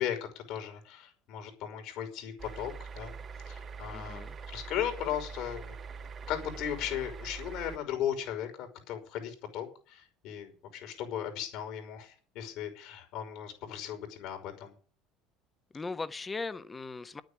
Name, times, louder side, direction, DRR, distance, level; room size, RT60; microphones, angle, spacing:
voice 1, 0.0-3.2 3.5-5.8 6.3-14.7, left 10 dB, 65° left, 5.6 m, -37 dB
sound 1, 2.4-7.8, right 5 dB, 35° right, 1.8 m, -43 dB
voice 2, 3.9-4.4 15.7-17.2, left 3 dB, 20° left, 1.2 m, -38 dB
10.5 x 9.2 x 8.8 m
supercardioid pair, 110°, 0 cm